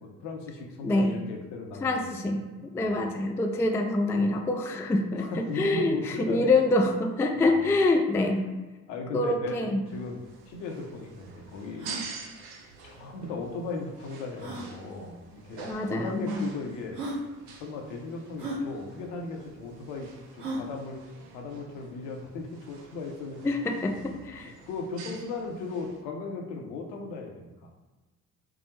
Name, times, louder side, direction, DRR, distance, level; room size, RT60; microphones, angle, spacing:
voice 1, 0.0-2.4 2.8-3.1 5.2-6.6 7.4-7.7 8.9-9.6 9.9-10.2 10.5-11.9 12.8-15.2 15.5-17.0 17.5-21.0 21.3-23.5 24.7-27.7, left 3 dB, 65° left, 2 dB, 0.9 m, -37 dB
voice 2, 0.8-1.2 1.8-8.5 9.1-9.8 15.6-16.5 23.4-24.5, left 2 dB, 5° left, 3 dB, 0.3 m, -26 dB
sound 1, 9.9-26.0, right 4 dB, 55° right, 0.8 m, -47 dB
sound 2, 10.2-10.3 10.5-10.6 11.1-11.2 11.7-12.1 13.4-13.5 14.4-14.7 15.7-15.8 16.5-16.6 16.9-17.2 18.4-18.6 20.4-20.7, right 1 dB, 85° right, 0.8 m, -35 dB
6.0 x 2.0 x 3.1 m, 1.2 s
figure-of-eight pair, 45°, 44 cm